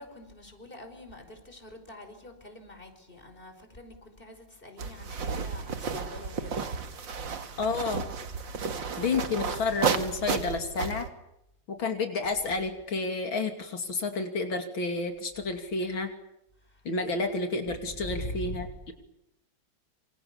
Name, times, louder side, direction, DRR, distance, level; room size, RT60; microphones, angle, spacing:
voice 1, 0.0-6.6 17.0-17.3 18.0-18.7, left 1 dB, 25° left, 6 dB, 5.5 m, -44 dB
sound 1, 4.8-11.1, right 5 dB, 70° right, 2.6 m, -32 dB
voice 2, 7.6-8.1 9.0-11.1 11.7-16.1 16.9-18.9, left 3 dB, 85° left, 5 dB, 3.5 m, -30 dB
28.5 x 27.5 x 7.1 m, 0.82 s
omnidirectional pair, 2.1 m